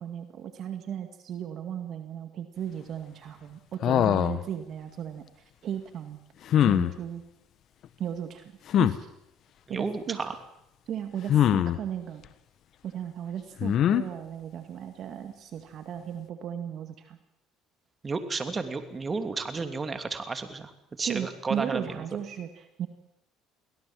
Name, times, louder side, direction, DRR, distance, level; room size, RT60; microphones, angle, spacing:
voice 1, 0.0-5.2 5.6-6.2 6.6-7.2 8.0-8.5 8.8-9.1 9.7-10.3 10.9-12.2 12.8-17.2 21.0-22.9, right 9 dB, 55° right, 8 dB, 2.1 m, -36 dB
sound 1, 3.8-4.4 6.5-6.9 8.7-9.0 11.3-11.8 13.6-14.0, left 10 dB, 55° left, 1.2 m, -22 dB
voice 2, 9.7-10.4 18.0-20.7 21.0-22.0, right 4 dB, 25° right, 8 dB, 2.9 m, -32 dB
23.5 x 17.0 x 7.6 m, 0.80 s
supercardioid pair, 80°, 0 cm